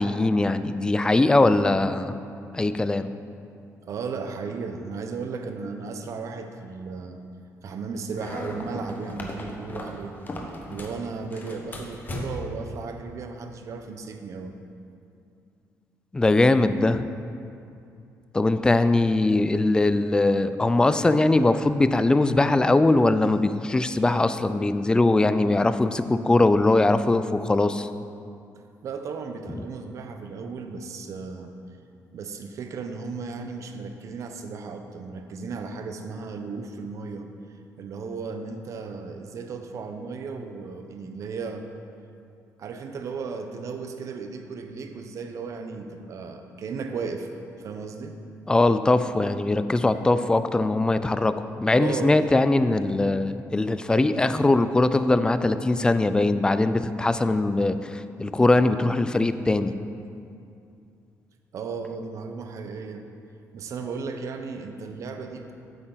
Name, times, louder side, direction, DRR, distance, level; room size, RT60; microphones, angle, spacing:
voice 1, 0.0-2.1 2.5-3.1 16.1-17.0 18.3-27.9 48.5-59.7, left 2 dB, 15° left, 12 dB, 0.3 m, -21 dB
voice 2, 3.8-7.2 7.6-10.2 10.7-14.6 28.8-31.6 32.1-37.3 37.8-41.7 42.6-47.3 47.6-48.2 51.8-52.3 61.5-63.1 63.5-65.5, right 4 dB, 55° right, 6 dB, 0.7 m, -35 dB
sound 1, 8.1-11.0 11.3-12.6, left 1 dB, 30° left, 1.1 m, -36 dB
8.7 x 8.1 x 3.9 m, 2.5 s
cardioid pair, 120°, 6 cm